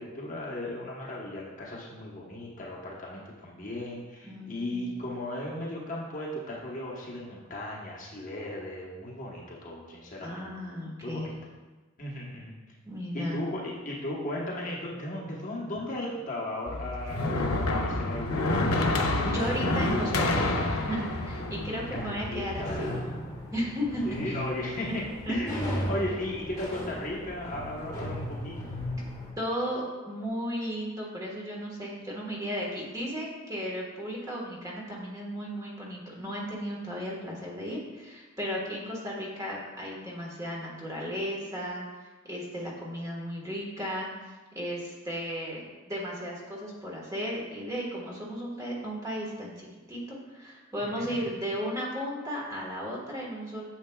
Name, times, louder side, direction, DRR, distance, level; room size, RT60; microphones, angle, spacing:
voice 1, 0.0-10.5 11.0-11.3 12.0-12.6 13.1-19.0 21.9-23.0 24.0-28.7 50.8-51.3, left 1 dB, 40° left, -4 dB, 1.1 m, -36 dB
voice 2, 4.2-5.0 10.2-11.3 12.9-13.4 17.1-17.2 19.2-22.9 23.5-24.4 25.2-25.4 29.4-53.6, equal, 15° right, -4 dB, 1.4 m, -35 dB
sound 1, 16.7-22.8, left 2 dB, 90° left, 0.8 m, -28 dB
sound 2, 19.4-29.3, equal, 15° left, 1.3 m, -37 dB
8.9 x 6.9 x 2.3 m, 1.2 s
head